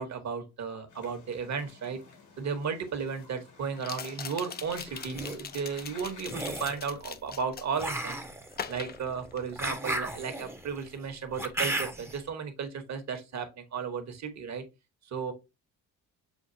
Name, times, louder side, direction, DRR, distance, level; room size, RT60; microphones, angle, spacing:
voice 1, 0.0-2.0 2.4-8.2 8.7-14.6 15.1-15.3, right 6 dB, 45° right, 1.1 m, -34 dB
sound 1, 0.9-6.3, left 4 dB, 80° left, 1.8 m, -53 dB
sound 2, 2.1-2.2 3.8-8.0 8.5-9.8 10.1-10.5, left 7 dB, 25° left, 0.4 m, -42 dB
sound 3, 4.9-5.4 6.2-6.8 7.8-12.2, right 1 dB, 5° right, 0.7 m, -34 dB
7.0 x 2.3 x 2.6 m
cardioid pair, 80°, 37 cm